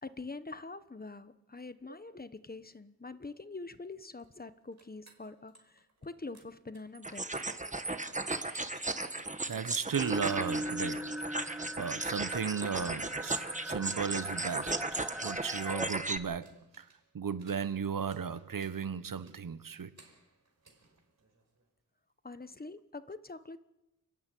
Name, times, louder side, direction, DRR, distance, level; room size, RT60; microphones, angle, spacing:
voice 1, 0.0-7.3 22.2-23.6, left 3 dB, 25° left, 1.1 m, -45 dB
sound 1, 4.2-6.1 6.3-11.4 14.2-21.7, right 4 dB, 55° right, 5.2 m, -61 dB
sound 2, 7.0-16.2, right 2 dB, 20° right, 1.5 m, -36 dB
voice 2, 9.5-11.1 11.8-16.9 17.1-19.9, right 7 dB, 75° right, 1.1 m, -35 dB
sound 3, 9.9-15.9, equal, 5° right, 1.8 m, -40 dB
29.0 x 13.5 x 9.3 m
wide cardioid pair, 100°, 34 cm